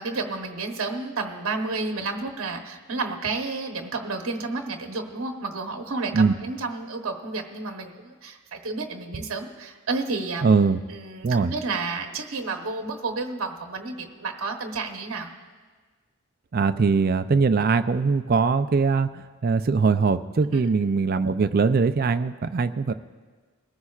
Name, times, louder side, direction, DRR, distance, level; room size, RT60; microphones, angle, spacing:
voice 1, 0.0-10.5 10.9-15.3 20.5-20.6, right 3 dB, 70° right, 4 dB, 1.0 m, -31 dB
voice 2, 10.4-10.8 11.2-11.5 16.5-22.9, right 4 dB, 45° right, 10 dB, 0.4 m, -21 dB
21.5 x 14.0 x 2.4 m, 1.4 s
head